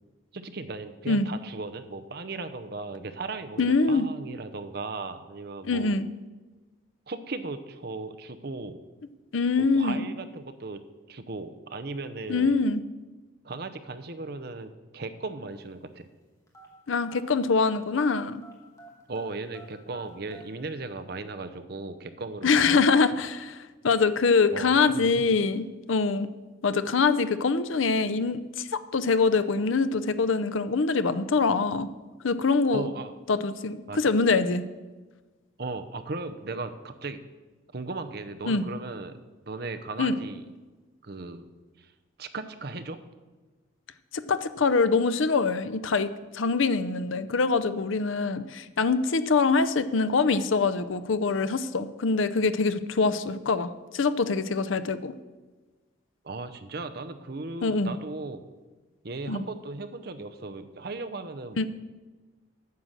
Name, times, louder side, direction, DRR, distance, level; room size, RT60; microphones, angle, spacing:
voice 1, 0.3-5.9 7.1-8.8 9.6-10.8 11.1-12.6 13.4-16.1 19.1-22.9 24.5-25.4 32.7-33.1 33.9-34.0 35.6-37.2 37.7-40.4 41.0-41.5 41.8-41.9 42.2-43.0 56.2-58.4 59.0-61.7, right 3 dB, 50° right, 9 dB, 0.8 m, -37 dB
voice 2, 3.6-4.1 5.6-6.1 9.3-10.1 12.3-12.8 16.9-18.4 22.4-23.6 23.8-26.3 26.6-31.9 32.2-32.9 33.3-34.6 38.4-38.6 40.0-40.2 44.1-55.1 57.6-57.9 59.3-59.5 61.6-61.7, left 4 dB, 80° left, 13 dB, 0.6 m, -24 dB
sound 1, 16.5-18.2 18.4-20.5, right 3 dB, 15° left, 1.8 m, -50 dB
9.4 x 7.5 x 6.5 m, 1.3 s
head